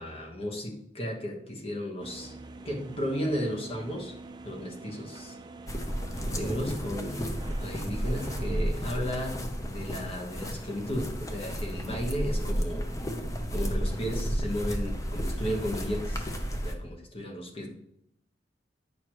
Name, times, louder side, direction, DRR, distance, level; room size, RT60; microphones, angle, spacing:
voice 1, 0.0-2.3 2.6-4.1 4.4-5.3 6.3-12.8 13.5-16.3 16.5-17.7, equal, 35° left, 0 dB, 1.2 m, -34 dB
sound 1, 2.0-8.8, right 3 dB, 25° right, 0.5 m, -45 dB
sound 2, 5.7-16.7, equal, 20° left, 0.7 m, -32 dB
9.2 x 6.4 x 3.0 m, 0.77 s
head